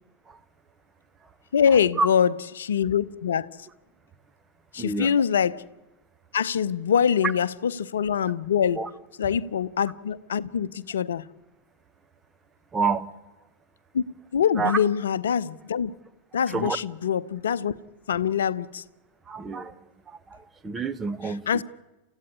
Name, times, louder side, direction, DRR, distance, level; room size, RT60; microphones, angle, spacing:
voice 1, 1.5-3.5 4.7-5.6 6.3-8.8 9.2-11.3 13.9-14.0 14.3-15.9 16.3-17.7 18.1-18.8 21.5-21.6, left 8 dB, 65° left, 0.7 m, -24 dB
voice 2, 4.8-5.2 8.8-8.9 12.7-13.1 14.5-14.8 16.5-16.8 19.3-19.7 20.1-21.6, right 4 dB, 15° right, 1.2 m, -28 dB
29.5 x 15.0 x 9.7 m
figure-of-eight pair, 90°, 0 cm